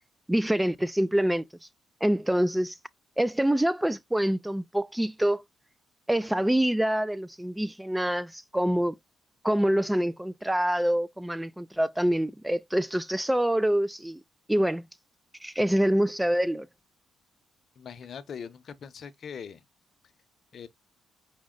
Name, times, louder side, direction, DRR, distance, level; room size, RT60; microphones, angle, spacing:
voice 1, 0.3-1.4 2.0-2.8 3.2-5.4 6.1-9.0 9.4-14.2 14.5-14.9 15.4-16.7, right 1 dB, 5° right, 0.3 m, -26 dB
voice 2, 17.8-19.6 20.5-20.7, left 7 dB, 55° left, 0.7 m, -41 dB
5.1 x 2.1 x 3.7 m
cardioid pair, 90°, 0 cm